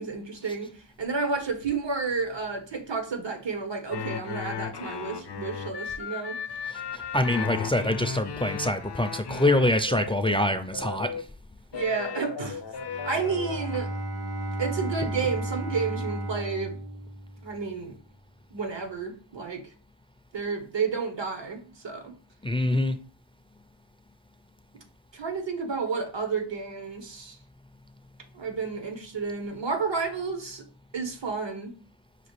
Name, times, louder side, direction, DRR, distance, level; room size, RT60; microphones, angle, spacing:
voice 1, 0.0-6.4 11.7-12.6 12.9-13.9 14.6-16.8 17.4-18.0 18.5-19.7 20.3-22.1 25.1-27.4 28.3-30.7 30.9-31.8, right 4 dB, 75° right, 1.1 m, -31 dB
sound 1, 3.9-11.2 11.7-13.8, left 6 dB, 65° left, 0.6 m, -35 dB
voice 2, 6.9-11.2 22.4-23.0, left 1 dB, 15° left, 0.3 m, -25 dB
Bowed string instrument, 12.8-17.7, right 1 dB, 55° right, 1.0 m, -34 dB
5.8 x 2.4 x 3.1 m
wide cardioid pair, 50°, 44 cm